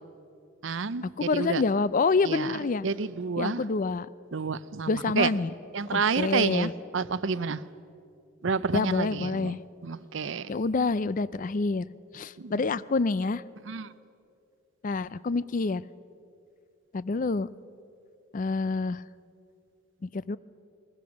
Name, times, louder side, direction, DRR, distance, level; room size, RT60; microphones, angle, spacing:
voice 1, 0.6-1.6 2.2-3.6 4.3-5.3 5.7-7.6 8.4-10.5 12.4-12.7 13.6-13.9, right 5 dB, 65° right, 0.6 m, -30 dB
voice 2, 1.2-2.9 3.4-4.1 4.9-5.5 5.9-6.7 8.7-9.6 10.5-11.9 12.1-13.4 14.8-15.8 16.9-17.5 18.3-19.0 20.0-20.4, left 4 dB, 40° left, 0.4 m, -27 dB
21.0 x 20.0 x 6.3 m
head